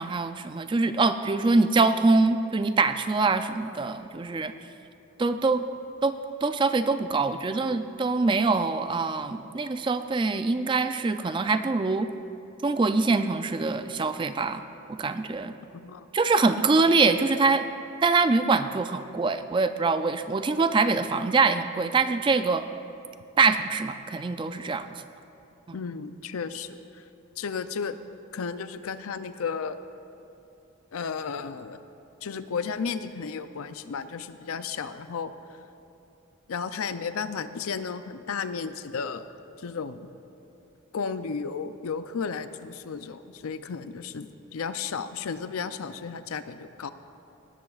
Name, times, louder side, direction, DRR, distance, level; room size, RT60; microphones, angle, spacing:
voice 1, 0.0-4.5 5.2-5.7 6.0-12.1 12.6-14.6 14.9-15.6 16.1-17.7 18.0-22.6 23.4-24.9 25.7-25.8, right 3 dB, 20° right, 10 dB, 0.3 m, -24 dB
voice 2, 15.7-16.1 25.7-27.0 27.4-28.0 28.3-29.8 30.9-31.8 32.2-35.3 36.5-39.3 39.6-40.1 40.9-46.9, left 5 dB, 80° left, 11 dB, 0.5 m, -33 dB
18.0 x 13.0 x 2.4 m, 2.8 s
head